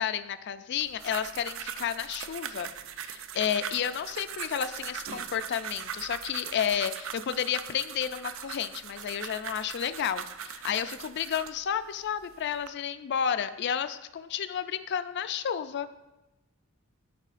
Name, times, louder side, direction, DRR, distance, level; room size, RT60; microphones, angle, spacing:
voice 1, 0.0-2.7 3.0-15.9, left 8 dB, 50° left, 12 dB, 0.3 m, -31 dB
sound 1, 0.8-11.6 12.2-12.7, right 8 dB, 60° right, 0.4 m, -40 dB
12.0 x 4.8 x 2.5 m, 1.0 s
head